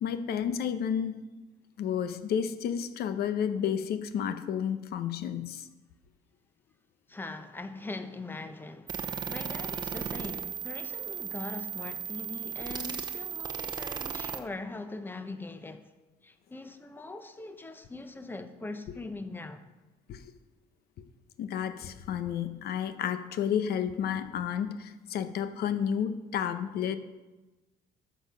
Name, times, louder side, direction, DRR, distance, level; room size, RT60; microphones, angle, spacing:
voice 1, 0.0-1.1 1.8-5.7 20.1-20.2 21.4-27.0, left 8 dB, 65° left, 0.9 m, -31 dB
voice 2, 7.1-15.8 16.2-19.6, left 3 dB, 10° left, 0.8 m, -41 dB
sound 1, 8.9-14.4, right 7 dB, 25° right, 0.8 m, -36 dB
13.5 x 6.2 x 5.5 m
cardioid pair, 140°, 17 cm